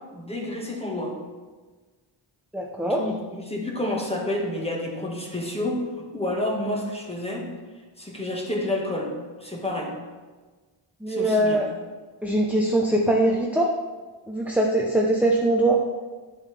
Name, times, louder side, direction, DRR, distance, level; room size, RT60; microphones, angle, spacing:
voice 1, 0.1-1.1 2.8-5.8 6.1-7.5 8.0-9.1 9.4-10.0 11.1-11.6, left 1 dB, 10° left, -1 dB, 1.6 m, -29 dB
voice 2, 2.5-3.0 11.0-11.7 12.2-13.7 14.3-15.8, right 1 dB, 5° right, -1 dB, 0.7 m, -22 dB
10.5 x 7.1 x 3.3 m, 1.4 s
wide cardioid pair, 105°, 49 cm